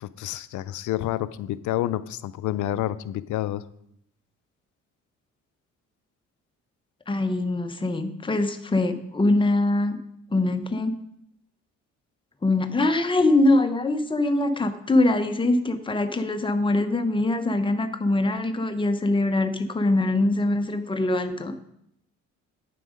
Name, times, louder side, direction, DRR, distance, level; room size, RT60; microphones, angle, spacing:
voice 1, 0.0-3.6, left 13 dB, 75° left, 16 dB, 0.5 m, -29 dB
voice 2, 7.1-10.0 10.3-11.0 12.4-21.6, left 2 dB, 15° left, 8 dB, 0.9 m, -23 dB
9.3 x 7.8 x 5.1 m, 0.74 s
cardioid pair, 90°, 30 cm